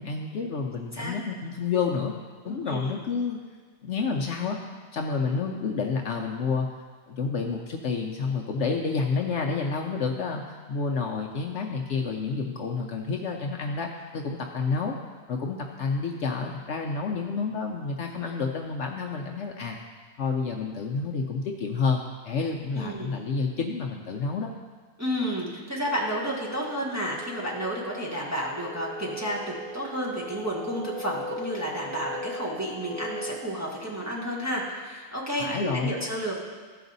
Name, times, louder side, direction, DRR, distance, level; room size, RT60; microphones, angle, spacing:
voice 1, 0.0-2.1 2.4-3.4 3.8-4.6 4.9-6.7 7.1-15.0 15.3-19.8 20.2-24.5 35.4-36.0, left 4 dB, 65° left, 1 dB, 0.9 m, -29 dB
voice 2, 2.4-3.0 22.8-23.1 25.0-36.4, equal, 10° right, -5 dB, 1.3 m, -31 dB
sound 1, 25.8-33.4, equal, 40° left, 1.2 m, -39 dB
14.0 x 5.0 x 4.0 m, 1.5 s
omnidirectional pair, 1.4 m